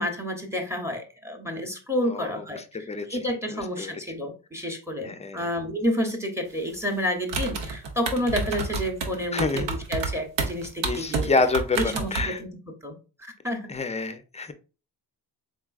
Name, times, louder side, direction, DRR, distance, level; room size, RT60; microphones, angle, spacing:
voice 1, 0.0-2.6 3.1-11.3 11.7-13.7, equal, 5° right, 5 dB, 0.8 m, -30 dB
voice 2, 2.1-3.2 3.5-3.9 5.0-5.5 9.3-9.7 10.8-12.4 13.7-14.5, left 3 dB, 15° left, 10 dB, 0.5 m, -28 dB
sound 1, 7.3-12.2, right 4 dB, 90° right, 0.9 m, -29 dB
4.0 x 3.5 x 2.4 m, 0.33 s
cardioid pair, 95°, 42 cm